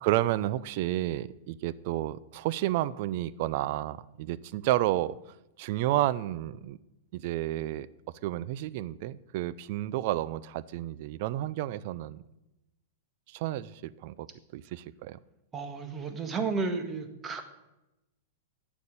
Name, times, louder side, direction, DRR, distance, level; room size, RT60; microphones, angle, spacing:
voice 1, 0.0-5.2 5.6-6.8 7.1-7.9 8.2-12.2 13.3-14.3 14.5-15.2, right 15 dB, 55° right, 19 dB, 0.5 m, -31 dB
voice 2, 15.5-17.6, right 4 dB, 25° right, 7 dB, 1.8 m, -33 dB
9.3 x 7.2 x 8.8 m, 0.95 s
hypercardioid pair, 110°, 0 cm